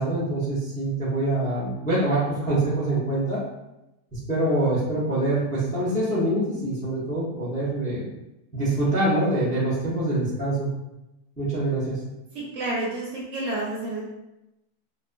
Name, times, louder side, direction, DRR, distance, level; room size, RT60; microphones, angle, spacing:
voice 1, 0.0-3.4 4.1-8.1 8.5-10.7 11.4-12.0, right 1 dB, 10° left, -8 dB, 0.5 m, -25 dB
voice 2, 12.3-14.0, right 2 dB, 65° right, -4 dB, 1.0 m, -29 dB
2.9 x 2.1 x 2.5 m, 0.93 s
omnidirectional pair, 1.5 m